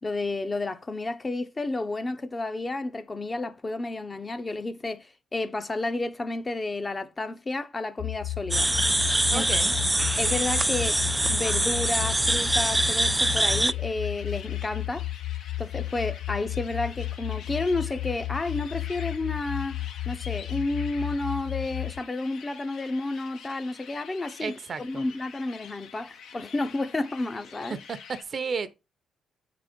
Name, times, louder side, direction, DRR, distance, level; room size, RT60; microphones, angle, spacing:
voice 1, 0.0-8.7 9.3-9.5 10.2-11.0 11.3-15.1 15.6-19.8 20.1-27.8, left 2 dB, 25° left, 0.8 m, -31 dB
sound 1, 8.0-22.0, left 15 dB, 55° left, 0.4 m, -33 dB
sound 2, 8.5-13.7, right 1 dB, 10° right, 0.3 m, -24 dB
voice 2, 9.3-9.7 24.4-25.0 27.7-28.8, right 5 dB, 45° right, 0.8 m, -33 dB
sound 3, 10.1-28.2, left 7 dB, 75° left, 1.1 m, -47 dB
8.3 x 3.9 x 5.2 m
cardioid pair, 90°, 0 cm